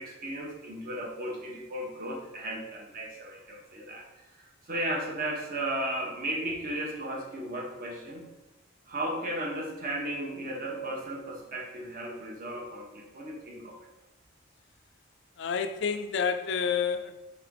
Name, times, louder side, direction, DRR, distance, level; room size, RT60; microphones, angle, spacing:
voice 1, 0.0-4.0 4.3-8.3 8.9-13.8, right 1 dB, 45° right, 0.8 m, -35 dB
voice 2, 15.4-17.1, left 6 dB, 55° left, 0.3 m, -29 dB
3.8 x 3.3 x 3.6 m
head